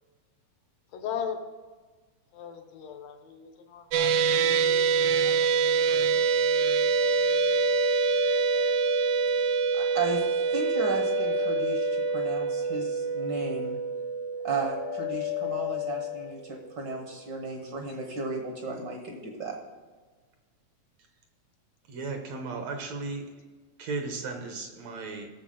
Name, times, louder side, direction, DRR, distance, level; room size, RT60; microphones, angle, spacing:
voice 1, 0.9-1.4 2.3-4.9 5.2-6.1, left 7 dB, 65° left, 6 dB, 2.0 m, -39 dB
sound 1, 3.9-16.3, right 6 dB, 85° right, 1.3 m, -26 dB
sound 2, 5.3-13.4 13.7-14.3 14.6-16.4, left 19 dB, 90° left, 2.4 m, -34 dB
voice 2, 9.4-10.2 10.5-13.8 14.4-19.6, right 3 dB, 50° right, 2 dB, 1.4 m, -34 dB
voice 3, 21.9-23.3 23.8-25.3, right 3 dB, 65° right, 4 dB, 2.1 m, -35 dB
17.5 x 7.0 x 3.8 m, 1.4 s
omnidirectional pair, 3.5 m